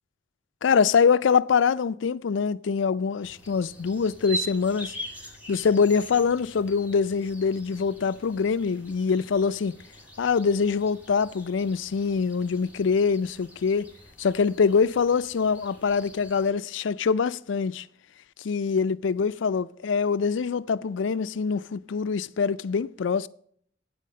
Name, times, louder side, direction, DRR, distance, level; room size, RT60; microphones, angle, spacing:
voice 1, 0.6-4.9 5.5-9.7 10.2-13.9 14.2-17.9 18.4-23.3, left 5 dB, 80° left, 0.4 m, -24 dB
sound 1, 3.2-16.5, right 1 dB, 10° right, 2.0 m, -42 dB
9.1 x 7.8 x 6.4 m
head